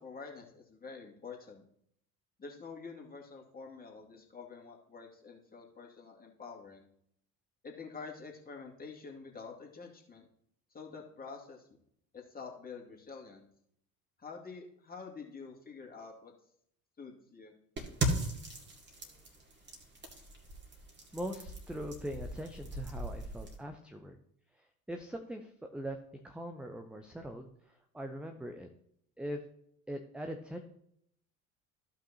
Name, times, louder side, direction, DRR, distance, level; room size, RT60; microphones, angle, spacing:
voice 1, 0.0-1.6 2.4-6.9 7.6-10.3 10.7-11.7 12.1-13.5 14.2-16.3 17.0-17.5, left 4 dB, 20° left, 0 dB, 2.3 m, -47 dB
sound 1, 17.8-23.6, right 1 dB, 25° right, 2.1 m, -38 dB
voice 2, 21.1-24.2 24.6-26.0 26.2-28.7 29.2-29.4 29.9-30.6, equal, ahead, 5 dB, 0.6 m, -41 dB
15.0 x 5.7 x 2.8 m, 0.71 s
figure-of-eight pair, 65°, 44 cm